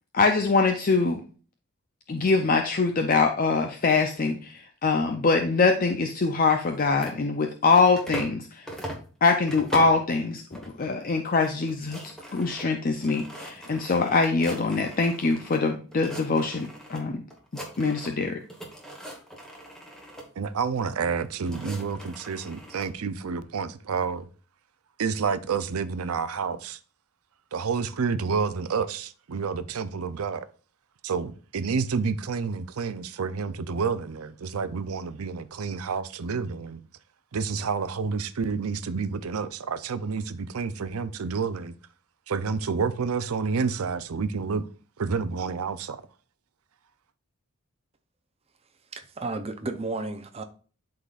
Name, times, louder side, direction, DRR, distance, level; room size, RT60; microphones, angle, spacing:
voice 1, 0.1-1.2 2.1-8.7 9.2-12.0 12.3-17.2 17.8-18.4, left 4 dB, 40° left, 0.5 m, -23 dB
sound 1, 6.7-8.4 8.7-10.1 10.5-11.0 11.3-11.4 11.6-15.6 15.9-17.0 17.3-18.2 18.5-20.3 21.1-22.9, right 1 dB, 5° left, 1.3 m, -41 dB
voice 2, 20.4-24.3 25.0-26.8 27.5-30.5 31.0-36.8 37.3-41.7 42.3-44.6 45.0-46.0, right 5 dB, 80° right, 0.5 m, -29 dB
voice 3, 48.9-50.4, right 3 dB, 30° right, 0.6 m, -33 dB
11.5 x 3.9 x 2.4 m
head